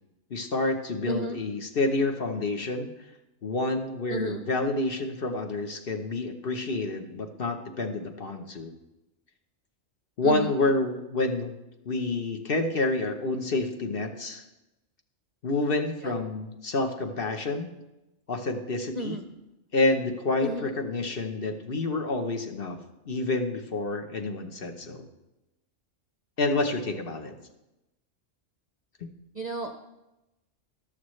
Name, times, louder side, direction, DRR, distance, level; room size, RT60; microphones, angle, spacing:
voice 1, 0.3-2.9 3.4-8.7 10.2-11.6 11.9-14.4 15.4-17.7 18.3-19.2 19.7-22.8 23.1-25.1 26.4-27.3 29.0-29.1, left 2 dB, 50° left, 5 dB, 1.1 m, -28 dB
voice 2, 1.1-1.4 4.1-4.4 10.2-10.6 16.0-16.1 18.9-19.3 20.4-20.7 29.3-29.7, right 2 dB, 45° right, 5 dB, 0.6 m, -33 dB
13.5 x 11.5 x 3.2 m, 0.97 s
omnidirectional pair, 1.3 m